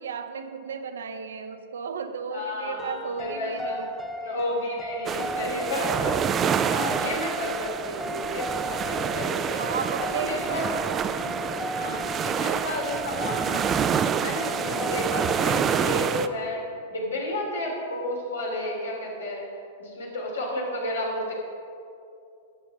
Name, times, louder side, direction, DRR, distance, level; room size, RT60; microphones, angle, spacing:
voice 1, 0.0-3.9 4.2-4.4 9.5-10.4 11.1-11.5, right 5 dB, 75° right, 8 dB, 0.8 m, -34 dB
voice 2, 2.3-3.8 4.2-6.3 6.6-9.6 10.2-10.8 11.1-11.2 11.6-13.8 14.2-16.6 16.9-19.5 19.8-21.3, left 1 dB, 85° left, -2 dB, 3.0 m, -32 dB
sound 1, 2.8-15.6, left 1 dB, 10° left, 0.7 m, -36 dB
sound 2, 5.1-16.3, right 7 dB, 25° right, 0.4 m, -27 dB
12.0 x 8.1 x 5.0 m, 2.6 s
hypercardioid pair, 105°, 0 cm